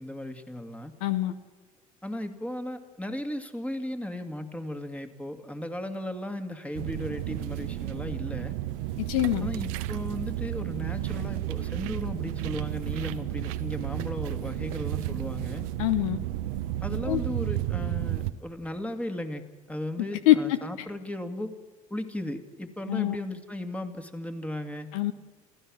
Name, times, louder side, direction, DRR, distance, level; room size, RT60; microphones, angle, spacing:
voice 1, 0.0-0.9 2.0-8.6 9.4-15.6 16.8-19.4 19.7-21.5 21.9-24.9, left 1 dB, 5° left, 6 dB, 2.3 m, -36 dB
voice 2, 1.0-1.3 9.0-9.5 15.8-16.2 17.1-17.2 20.3-20.4 22.9-23.2 24.9-25.1, left 15 dB, 70° left, 12 dB, 1.0 m, -24 dB
sound 1, 6.7-18.3, right 14 dB, 75° right, 1.0 m, -32 dB
28.0 x 15.5 x 6.3 m, 1.4 s
hypercardioid pair, 70°, 18 cm